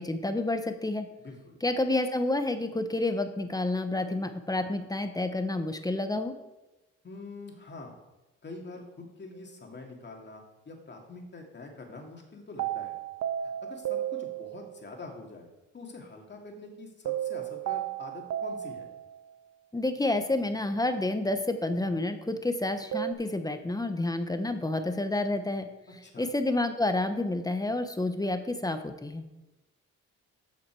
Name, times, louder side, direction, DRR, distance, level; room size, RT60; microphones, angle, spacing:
voice 1, 0.0-1.1 1.6-6.3 19.7-25.7 26.2-29.2, left 2 dB, 10° left, 8 dB, 1.0 m, -29 dB
voice 2, 1.2-1.6 7.0-8.0 8.4-13.0 13.4-15.5 15.7-18.9 26.0-26.3, left 3 dB, 35° left, 1 dB, 2.5 m, -45 dB
sound 1, 12.6-14.9 17.1-19.4 22.9-23.1, right 11 dB, 75° right, 0.9 m, -34 dB
14.0 x 5.9 x 4.7 m, 1.0 s
cardioid pair, 90°, 30 cm